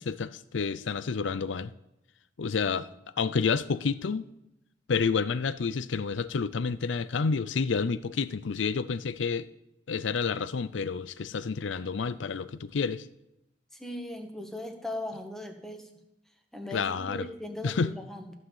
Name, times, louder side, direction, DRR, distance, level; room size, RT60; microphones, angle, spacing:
voice 1, 0.0-1.7 2.4-2.9 3.2-4.3 4.9-9.5 9.9-13.1 16.7-17.3 17.6-17.9, left 5 dB, 80° left, 0.5 m, -29 dB
voice 2, 13.7-15.8 16.5-18.3, left 1 dB, ahead, 1.6 m, -38 dB
14.5 x 6.3 x 7.4 m
head